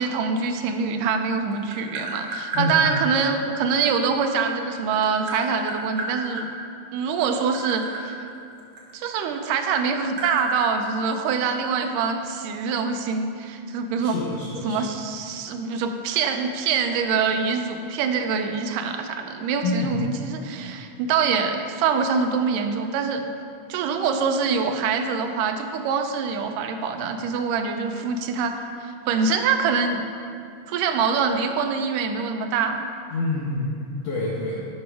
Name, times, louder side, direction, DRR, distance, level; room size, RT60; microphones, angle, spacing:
voice 1, 0.0-6.5 6.9-8.1 8.9-14.2 14.6-23.2 23.7-30.0 30.7-32.9, right 5 dB, 85° right, 5 dB, 2.2 m, -24 dB
Tap, 1.1-3.0 4.3-6.5 7.2-9.4 9.7-11.7, right 1 dB, 50° right, 1.8 m, -32 dB
voice 2, 14.0-14.8 19.6-20.0 33.1-34.7, left 2 dB, 65° left, -5 dB, 1.7 m, -27 dB
12.0 x 5.4 x 4.7 m, 2.5 s
omnidirectional pair, 3.8 m